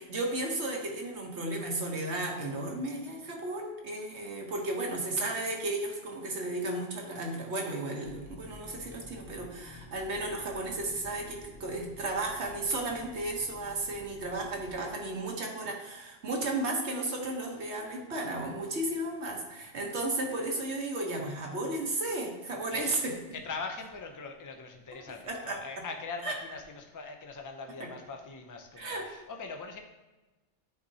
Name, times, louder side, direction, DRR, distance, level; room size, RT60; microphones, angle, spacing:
voice 1, 0.0-23.2 25.2-25.8 26.2-26.3 27.8-27.9 28.8-29.1, right 2 dB, 65° right, 1 dB, 1.3 m, -34 dB
sound 1, 8.0-14.7, left 2 dB, 70° left, 1.9 m, -51 dB
voice 2, 22.7-23.0 23.3-29.8, left 4 dB, 30° left, 4 dB, 0.3 m, -41 dB
9.2 x 4.2 x 2.7 m, 1.2 s
omnidirectional pair, 1.2 m